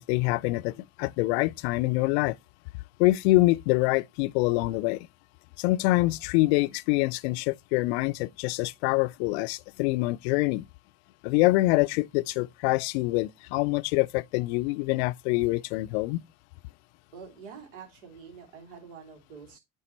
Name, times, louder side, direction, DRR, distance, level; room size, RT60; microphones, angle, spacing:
voice 1, 0.0-2.4 3.0-5.1 5.6-10.6 11.2-16.2, left 20 dB, 65° left, 0.5 m, -25 dB
voice 2, 17.1-19.6, right 6 dB, 75° right, 2.8 m, -46 dB
9.9 x 3.6 x 4.2 m
hypercardioid pair, 65°, 35 cm